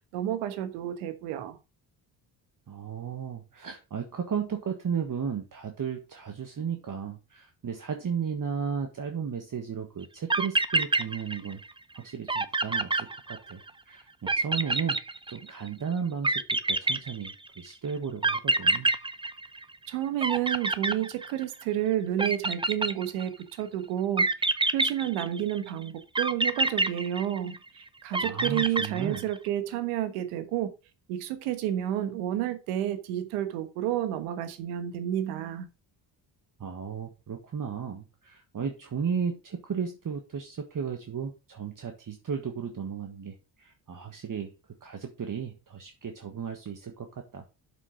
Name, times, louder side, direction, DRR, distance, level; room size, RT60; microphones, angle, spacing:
voice 1, 0.0-1.6 19.9-30.7 31.1-35.7, right 11 dB, 90° right, 1.4 m, -30 dB
voice 2, 2.7-11.6 11.9-15.0 15.3-18.9 28.2-29.2 36.6-44.5 44.8-47.4, right 7 dB, 40° right, 1.5 m, -34 dB
sound 1, 10.0-10.1 10.3-11.7 12.0-12.1 12.3-13.7 14.3-15.7 16.2-17.6 18.2-19.9 20.2-21.6 22.2-23.4 24.2-25.6 26.2-27.7 28.1-29.4, right 2 dB, 10° right, 0.7 m, -27 dB
7.3 x 6.8 x 4.8 m
supercardioid pair, 65°, 49 cm